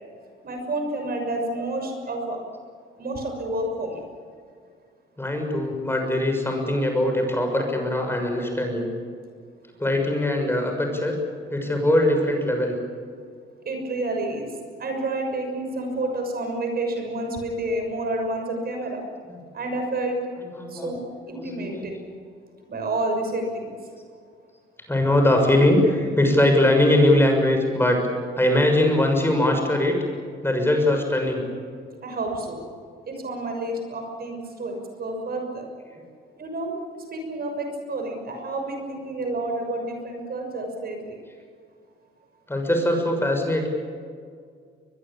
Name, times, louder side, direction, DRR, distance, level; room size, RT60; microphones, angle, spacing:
voice 1, 0.4-2.4 3.0-4.0 13.6-14.5 14.8-19.0 19.5-20.2 20.7-21.0 21.3-21.9 22.7-23.7 32.0-32.6 33.1-35.6 36.4-36.8 37.1-41.2, right 2 dB, 50° right, 4 dB, 6.5 m, -29 dB
voice 2, 5.2-8.9 9.8-11.2 11.5-12.8 19.3-19.4 20.5-20.9 21.3-21.9 24.9-28.0 28.4-30.0 30.4-31.4 42.5-43.7, left 1 dB, 10° left, 3 dB, 6.6 m, -21 dB
23.5 x 21.5 x 8.8 m, 2.1 s
cardioid pair, 90°, 20 cm